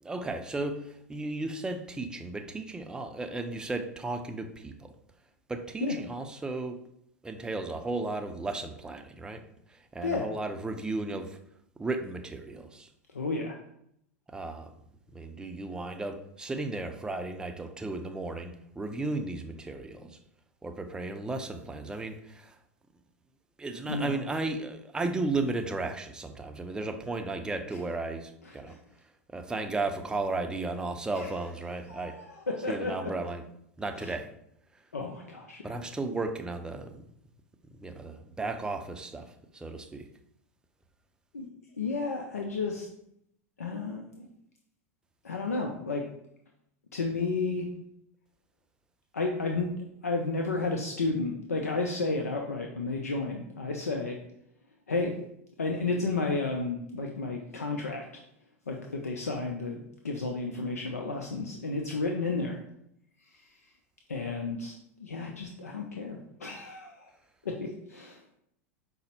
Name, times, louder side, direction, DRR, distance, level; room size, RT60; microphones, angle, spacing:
voice 1, 0.0-5.0 5.5-6.8 7.2-9.4 9.7-11.4 11.8-12.9 14.3-14.7 15.1-20.2 20.6-22.6 23.6-28.8 29.3-32.2 32.7-33.4 33.8-34.3 35.6-37.0 37.8-40.1, right 3 dB, 10° right, 6 dB, 0.4 m, -34 dB
voice 2, 13.1-13.5 23.9-24.2 28.5-28.8 31.1-31.5 31.9-33.1 34.0-34.1 34.9-35.8 41.3-41.5 41.8-42.9 43.6-44.3 45.2-46.0 46.9-47.7 49.1-49.7 50.0-54.2 54.9-55.1 55.6-58.2 58.7-62.6 64.1-67.1 67.4-68.3, left 3 dB, 90° left, 2 dB, 0.5 m, -32 dB
5.1 x 2.0 x 4.2 m, 0.75 s
hypercardioid pair, 95°, 8 cm